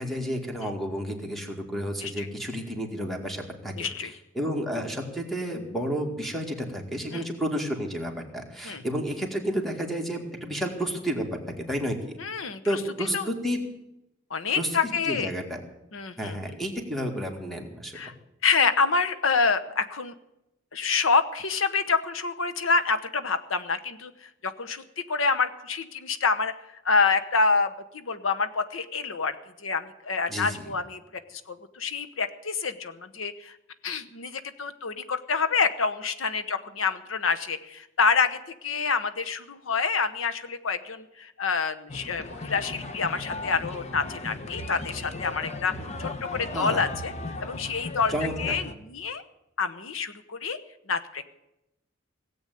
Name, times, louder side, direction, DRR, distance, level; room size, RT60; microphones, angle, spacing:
voice 1, 0.0-11.3 11.6-12.1 12.7-13.6 14.6-15.6 16.2-18.0 30.3-30.7 46.5-46.8 48.1-48.6, equal, ahead, 2 dB, 2.1 m, -31 dB
voice 2, 3.8-4.1 7.1-7.2 8.6-8.8 12.2-12.6 13.1-13.3 14.3-15.3 15.9-16.4 17.9-18.1 18.4-20.1 20.7-24.1 24.4-26.5 26.8-29.3 29.6-31.0 31.3-33.5 33.8-45.7 46.0-47.1 47.4-48.1 48.4-49.2 49.6-50.6 50.9-51.3, left 4 dB, 90° left, 10 dB, 1.0 m, -27 dB
sound 1, 41.9-48.7, left 2 dB, 35° left, 1.0 m, -37 dB
17.0 x 8.1 x 9.2 m, 0.89 s
head